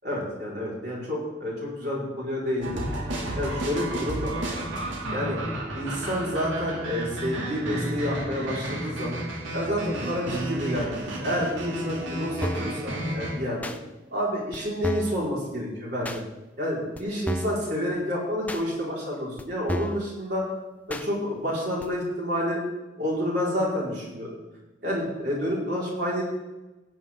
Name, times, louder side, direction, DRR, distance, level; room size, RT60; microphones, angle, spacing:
voice 1, 0.0-1.5 1.8-2.8 3.4-4.4 5.1-5.4 5.7-9.2 9.5-13.6 14.1-16.2 16.6-20.4 20.9-22.6 23.0-24.4 24.8-26.2, equal, 55° right, -5 dB, 4.6 m, -29 dB
sound 1, 2.6-13.3, right 1 dB, 85° right, 2.6 m, -32 dB
sound 2, 12.4-12.8 13.6-13.8 14.5-14.6 14.8-15.2 16.0-16.2 17.0-17.1 17.3-17.6 18.5-18.6 19.4-19.5 19.7-20.0 20.9-21.1 21.8-21.9, equal, 10° left, 0.5 m, -31 dB
16.0 x 9.0 x 3.7 m, 1.1 s
head